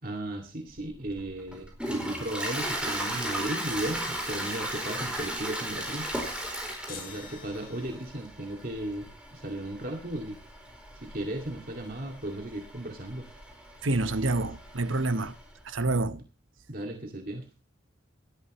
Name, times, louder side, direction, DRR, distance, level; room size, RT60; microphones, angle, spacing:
voice 1, 0.0-6.1 6.9-10.4 10.9-13.3 16.1-16.2 16.7-17.5, right 1 dB, 45° right, 2.3 m, -36 dB
Toilet flush, 0.8-15.5, right 1 dB, 5° right, 4.5 m, -37 dB
sound 1, 6.9-8.4, left 6 dB, 50° left, 5.5 m, -47 dB
voice 2, 13.8-15.4 15.6-16.2, right 2 dB, 85° right, 1.1 m, -27 dB
18.0 x 13.0 x 3.1 m
head